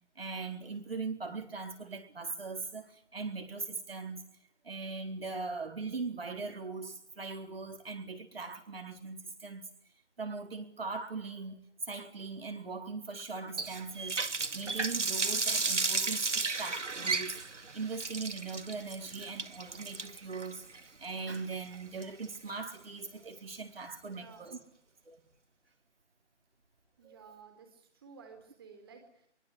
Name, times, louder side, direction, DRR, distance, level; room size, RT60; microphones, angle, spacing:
voice 1, 0.2-4.2 4.6-9.6 10.2-11.6 11.9-24.6 25.1-25.2 27.0-27.2, right 4 dB, 55° right, 4.3 m, -40 dB
Water tap faucet, 13.6-22.5, right 4 dB, 85° right, 2.2 m, -34 dB
voice 2, 24.0-24.7 27.0-29.3, right 5 dB, 20° right, 4.1 m, -54 dB
24.0 x 23.0 x 9.8 m
figure-of-eight pair, 170°, 35 cm